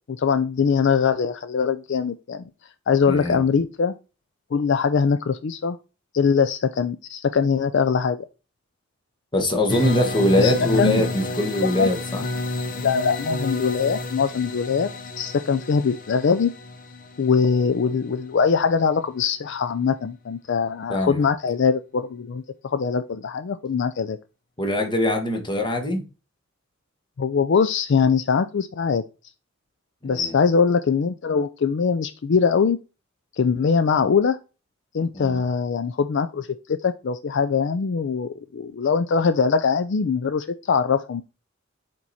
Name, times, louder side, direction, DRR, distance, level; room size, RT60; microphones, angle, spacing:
voice 1, 0.1-2.4 2.9-3.9 4.5-5.8 6.1-8.2 10.4-10.5 10.8-11.0 11.6-11.9 12.8-14.9 15.2-16.5 17.2-24.2 27.2-29.0 30.0-32.8 33.4-34.4 34.9-41.2, left 5 dB, 60° left, 0.4 m, -22 dB
voice 2, 3.1-3.4 9.3-12.2 20.9-21.2 24.6-26.0 30.0-30.3 35.1-35.4, left 1 dB, 25° left, 1.3 m, -22 dB
sound 1, 9.7-18.5, left 2 dB, 45° left, 0.8 m, -30 dB
7.2 x 4.6 x 4.1 m
head